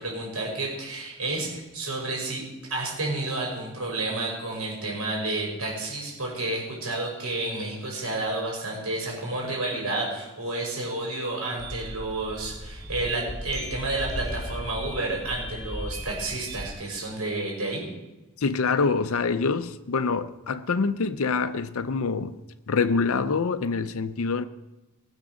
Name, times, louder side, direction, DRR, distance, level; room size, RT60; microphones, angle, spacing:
voice 1, 0.0-2.4 2.7-17.8, right 2 dB, 80° right, 6.0 m, -30 dB
sound 1, 11.6-16.7, equal, ahead, 3.8 m, -36 dB
voice 2, 18.4-22.3 22.7-24.4, left 4 dB, 65° left, 0.6 m, -25 dB
19.0 x 7.2 x 6.4 m
head